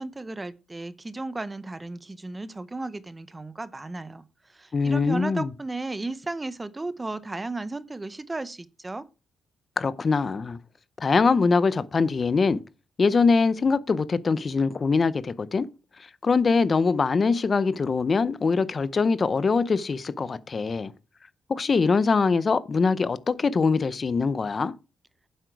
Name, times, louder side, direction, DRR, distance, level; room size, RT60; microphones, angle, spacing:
voice 1, 0.0-4.2 4.5-9.0, right 2 dB, 15° right, 0.7 m, -34 dB
voice 2, 4.7-5.5 9.8-10.6 11.0-12.6 13.0-15.7 16.2-20.9 21.5-24.7, left 4 dB, 35° left, 0.6 m, -23 dB
9.5 x 7.8 x 4.6 m
cardioid pair, 120°, 0 cm